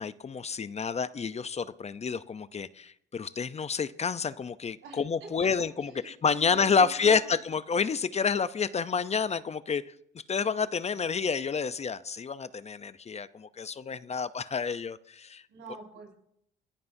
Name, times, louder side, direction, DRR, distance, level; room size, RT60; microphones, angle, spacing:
voice 1, 0.0-9.9 10.3-15.4, left 5 dB, 35° left, 15 dB, 0.6 m, -29 dB
voice 2, 4.8-5.3 5.8-7.3 15.5-16.2, right 5 dB, 85° right, -1 dB, 5.3 m, -46 dB
25.5 x 14.5 x 2.7 m, 0.73 s
cardioid pair, 90°, 20 cm